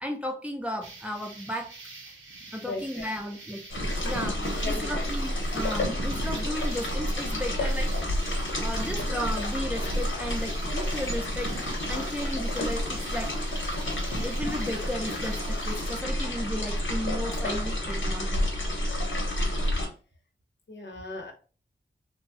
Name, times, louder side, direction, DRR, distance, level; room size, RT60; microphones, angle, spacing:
voice 1, 0.0-1.7 2.5-3.6 4.0-4.4 4.6-8.3 8.6-11.5 11.9-13.4 14.1-18.5, equal, 5° right, 2 dB, 0.5 m, -34 dB
sound 1, 0.8-16.0, right 2 dB, 85° right, 0.7 m, -43 dB
voice 2, 2.6-3.1 4.5-5.1 19.1-19.2 20.7-21.3, left 2 dB, 65° left, 2 dB, 0.8 m, -37 dB
sound 2, 3.7-19.9, left 1 dB, 85° left, 1.0 m, -29 dB
3.0 x 2.2 x 2.7 m, 0.37 s
wide cardioid pair, 90°, 20 cm